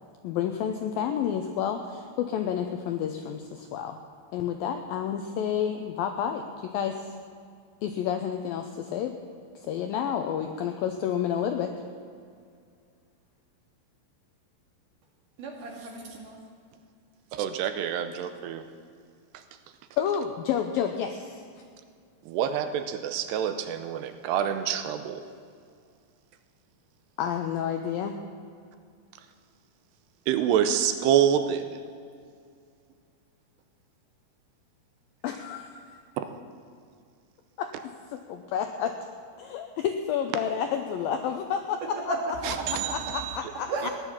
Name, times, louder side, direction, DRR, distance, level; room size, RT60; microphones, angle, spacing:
voice 1, 0.2-4.0 4.3-7.2 7.8-9.2 9.6-11.8 20.0-21.4 27.2-28.2 35.2-36.0 37.6-37.7 38.1-39.0 39.4-42.1 42.9-43.9, left 8 dB, 85° left, 6 dB, 2.0 m, -30 dB
voice 2, 15.4-16.4 42.0-43.0 43.7-43.9, right 2 dB, 55° right, 0 dB, 3.2 m, -34 dB
voice 3, 17.3-18.6 19.3-19.4 22.3-25.2 30.3-31.8 36.2-36.3 42.4-43.4 43.8-43.9, right 9 dB, 80° right, 8 dB, 2.7 m, -27 dB
16.5 x 11.0 x 7.2 m, 2.3 s
omnidirectional pair, 5.0 m